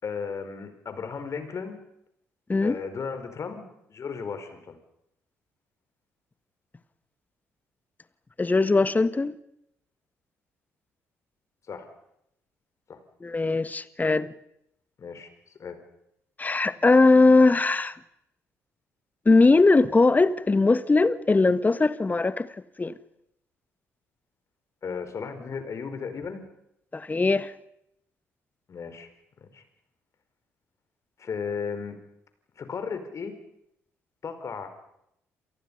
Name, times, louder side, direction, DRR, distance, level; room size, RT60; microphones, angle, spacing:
voice 1, 0.0-1.8 2.6-3.6 3.9-4.8 11.7-11.9 12.9-13.0 15.0-15.3 15.6-15.8 24.8-26.4 28.7-29.1 29.4-29.6 31.2-32.0 32.6-33.3 34.2-34.7, left 5 dB, 45° left, 5.0 m, -35 dB
voice 2, 8.4-9.4 13.2-14.3 16.4-17.9 19.2-22.5 22.8-22.9 26.9-27.5, left 3 dB, 20° left, 1.5 m, -20 dB
29.0 x 28.5 x 5.6 m
figure-of-eight pair, 45°, 7 cm